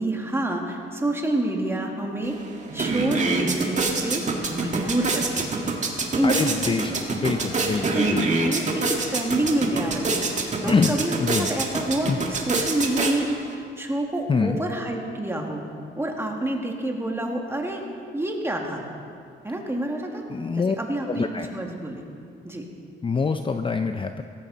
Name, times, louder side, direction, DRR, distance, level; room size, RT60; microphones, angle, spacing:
voice 1, 0.0-2.4 2.7-4.2 4.5-5.7 6.1-6.5 7.2-7.3 7.9-15.6 16.0-17.8 18.1-18.8 19.4-20.2 20.6-22.0 22.4-22.6, right 1 dB, 10° right, 1 dB, 2.2 m, -28 dB
sound 1, 2.2-2.3 2.6-13.5, right 3 dB, 35° right, 1.9 m, -26 dB
voice 2, 6.2-8.2 10.6-11.5 12.1-12.2 14.3-14.6 20.3-20.8 21.1-21.5 23.0-24.2, left 4 dB, 25° left, 7 dB, 0.6 m, -25 dB
17.0 x 14.5 x 4.2 m, 2.3 s
cardioid pair, 90°, 20 cm